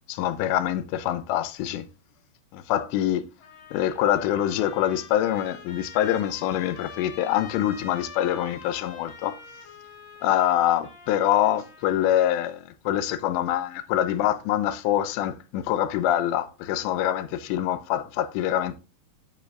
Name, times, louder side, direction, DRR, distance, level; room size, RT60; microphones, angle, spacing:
voice 1, 0.1-1.9 2.5-3.3 3.7-9.4 10.2-18.8, left 11 dB, 85° left, 2.8 m, -25 dB
Trumpet, 3.4-12.5, left 5 dB, 65° left, 4.5 m, -45 dB
14.0 x 5.4 x 2.4 m
omnidirectional pair, 5.1 m